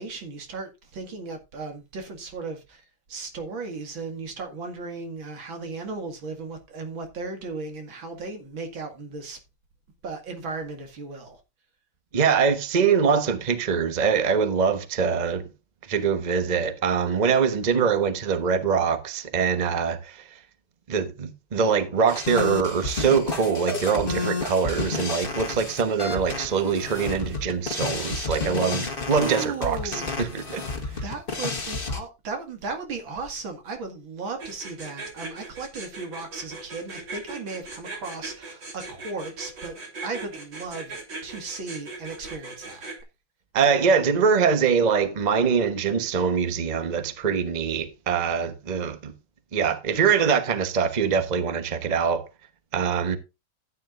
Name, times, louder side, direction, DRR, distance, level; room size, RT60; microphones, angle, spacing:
voice 1, 0.0-2.8 3.1-9.4 10.0-11.4 29.1-30.1 30.9-39.8 40.0-42.8, right 4 dB, 80° right, 2.8 m, -36 dB
voice 2, 12.1-15.5 15.9-20.2 20.9-30.6 43.5-49.1 49.5-52.2 52.7-53.2, right 6 dB, 30° right, 1.0 m, -23 dB
sound 1, 22.1-32.0, left 3 dB, 30° left, 1.6 m, -30 dB
sound 2, 34.4-43.0, right 3 dB, 65° right, 4.1 m, -38 dB
13.5 x 9.1 x 2.5 m
omnidirectional pair, 2.1 m